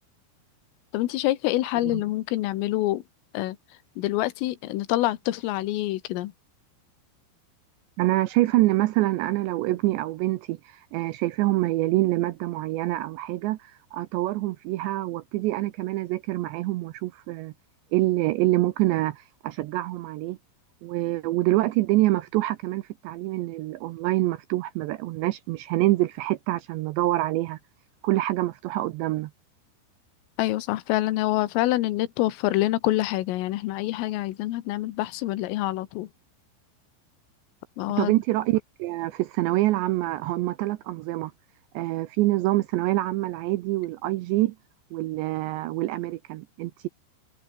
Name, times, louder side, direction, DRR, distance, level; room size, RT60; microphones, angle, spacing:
voice 1, 0.9-3.0 3.3-3.6 4.0-6.3 30.4-36.1 37.8-38.1, left 16 dB, 80° left, 3.9 m, -26 dB
voice 2, 8.0-17.5 17.9-20.4 20.8-27.6 28.0-29.3 38.0-41.3 41.7-44.6 44.9-46.9, right 17 dB, 80° right, 2.6 m, -26 dB
omnidirectional pair, 5.8 m